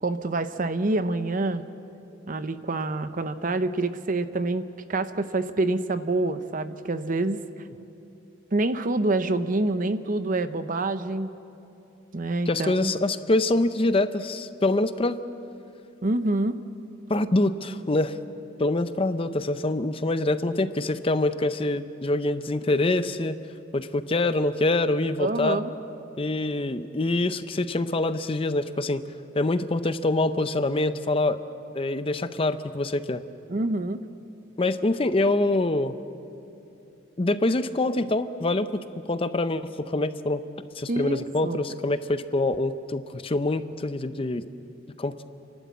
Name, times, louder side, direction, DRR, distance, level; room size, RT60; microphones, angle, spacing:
voice 1, 0.0-1.6 2.3-7.4 8.5-11.3 12.1-12.9 16.0-16.5 25.2-25.7 33.5-34.0 40.9-41.6, right 2 dB, 40° right, 11 dB, 0.8 m, -26 dB
voice 2, 12.5-15.2 17.1-18.2 18.6-23.4 23.7-25.6 26.2-29.0 29.3-31.4 31.7-33.2 34.6-36.0 37.2-38.7 39.1-40.4 40.8-44.4 45.0-45.1, left 2 dB, 30° left, 11 dB, 0.5 m, -25 dB
30.0 x 12.0 x 8.3 m, 2.8 s
head